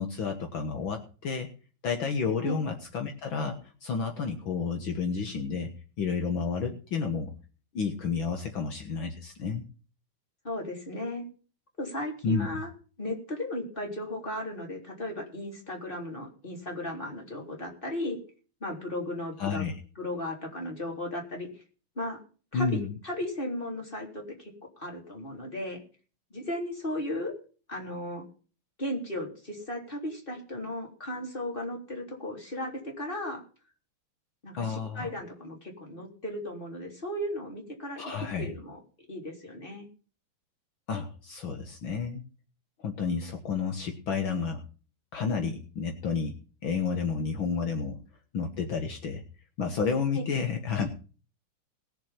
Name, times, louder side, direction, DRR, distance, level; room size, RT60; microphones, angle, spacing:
voice 1, 0.0-1.5 1.8-5.7 6.0-7.3 7.7-9.6 12.2-12.6 19.4-19.8 22.5-23.0 34.6-35.1 38.0-38.5 40.9-42.2 42.8-44.6 45.1-46.4 46.6-48.0 48.3-49.2 49.6-50.9, left 5 dB, 65° left, 4 dB, 2.2 m, -31 dB
voice 2, 10.4-11.2 11.8-12.7 13.0-18.2 18.6-19.6 20.0-21.5 22.0-22.2 22.5-22.8 23.0-25.8 26.3-27.3 27.7-28.2 28.8-33.4 34.4-38.8 39.1-39.9 50.1-50.2, left 1 dB, 25° left, 1 dB, 3.9 m, -35 dB
20.0 x 7.2 x 5.8 m, 0.38 s
omnidirectional pair, 2.4 m